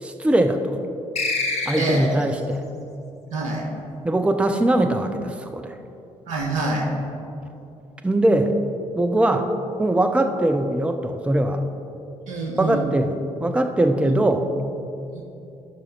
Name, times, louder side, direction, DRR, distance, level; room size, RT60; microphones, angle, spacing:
voice 1, 0.0-0.8 1.7-2.6 4.0-5.8 8.0-8.5 8.9-9.5 9.8-11.6 12.6-14.5, right 1 dB, 5° right, 6 dB, 0.6 m, -21 dB
sound 1, 1.1-2.3, left 3 dB, 40° left, 1.4 m, -26 dB
voice 2, 1.8-2.1 3.3-3.7 6.3-6.9 12.3-12.9 14.0-14.1 15.1-15.2, right 2 dB, 75° right, -1 dB, 1.3 m, -26 dB
13.0 x 5.7 x 3.9 m, 2.8 s
figure-of-eight pair, 45°, 17 cm